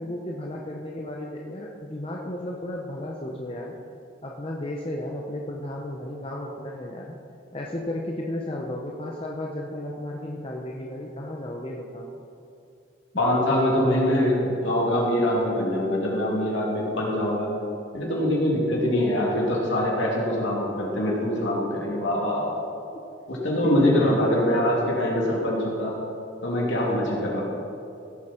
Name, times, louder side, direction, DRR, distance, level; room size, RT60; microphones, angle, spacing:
voice 1, 0.0-3.8 4.2-7.2 7.5-12.1 22.9-23.0 23.5-24.2, left 1 dB, 30° left, -1 dB, 0.8 m, -34 dB
voice 2, 13.2-17.5 17.9-22.5 23.3-26.0 26.4-27.4, left 1 dB, 70° left, -4 dB, 2.9 m, -23 dB
16.0 x 8.0 x 4.4 m, 2.6 s
head